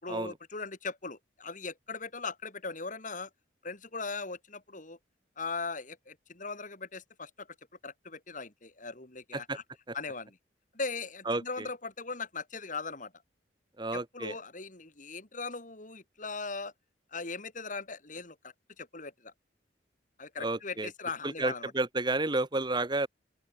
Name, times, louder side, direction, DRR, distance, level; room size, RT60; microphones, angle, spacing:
voice 1, 0.0-3.3 3.6-5.0 5.4-7.5 7.8-9.6 9.9-10.4 10.7-13.1 13.9-16.7 17.1-19.3 20.2-21.7, left 4 dB, 45° left, 3.5 m, -39 dB
voice 2, 11.2-11.7 13.8-14.3 20.4-20.9 21.2-23.1, right 2 dB, 25° right, 1.5 m, -31 dB
open air
head